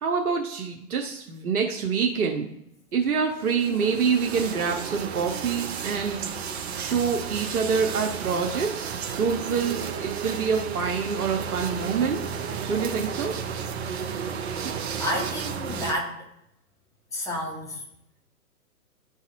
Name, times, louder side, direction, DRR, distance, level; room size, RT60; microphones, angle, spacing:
voice 1, 0.0-2.6 2.9-6.2 6.7-12.2 12.7-13.4, right 6 dB, 65° right, 2 dB, 0.9 m, -26 dB
sound 1, 3.4-15.9, right 7 dB, 45° right, 0.6 m, -33 dB
voice 2, 15.0-16.2 17.1-17.8, left 1 dB, 5° left, -2 dB, 1.1 m, -30 dB
11.5 x 4.0 x 2.5 m, 0.78 s
figure-of-eight pair, 125°, 46 cm